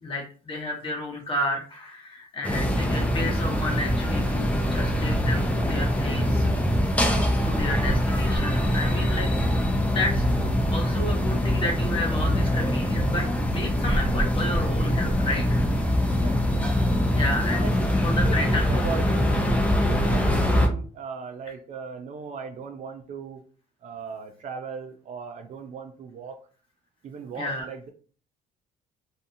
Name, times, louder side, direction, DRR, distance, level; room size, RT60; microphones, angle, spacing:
voice 1, 0.0-6.5 7.0-9.3 9.9-10.3 10.7-15.4 17.2-17.7 18.0-18.8 27.3-27.7, left 1 dB, 30° left, 0 dB, 1.1 m, -31 dB
sound 1, 2.4-20.7, equal, 10° left, 0.6 m, -23 dB
voice 2, 16.1-16.5 17.5-17.7 18.1-23.4 23.8-26.4 27.0-27.9, right 5 dB, 45° right, 6 dB, 0.4 m, -37 dB
2.6 x 2.3 x 2.6 m, 0.41 s
cardioid pair, 110°, 17 cm